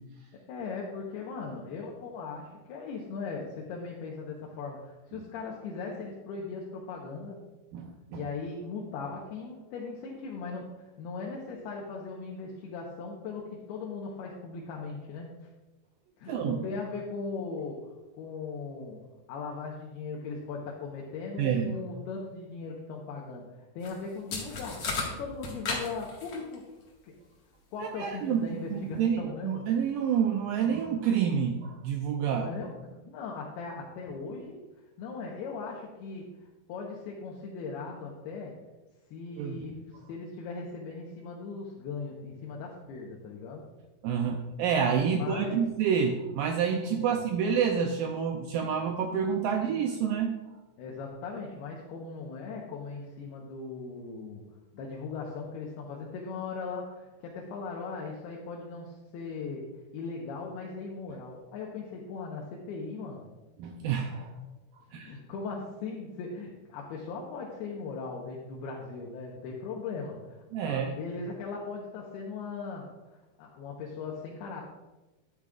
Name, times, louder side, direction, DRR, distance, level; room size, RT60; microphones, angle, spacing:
voice 1, 0.5-7.4 8.1-10.7 11.0-15.5 16.2-17.8 18.2-19.0 19.3-26.6 27.0-27.1 27.7-29.7 32.3-32.7 33.1-34.6 35.0-38.5 39.1-39.7 40.1-43.7 45.1-45.6 46.9-47.2 50.8-54.4 54.7-59.7 59.9-63.2 65.0-74.6, left 4 dB, 80° left, -2 dB, 2.9 m, -39 dB
voice 2, 7.7-8.3 16.3-16.6 21.4-21.8 27.8-32.5 39.4-39.8 44.0-50.3 63.6-64.4 64.9-65.2 70.5-70.9, right 7 dB, 85° right, 3 dB, 1.9 m, -28 dB
sound 1, 23.8-23.9 24.3-26.5, left 3 dB, 50° left, 2.1 m, -34 dB
12.0 x 10.5 x 2.4 m, 1.1 s
omnidirectional pair, 4.7 m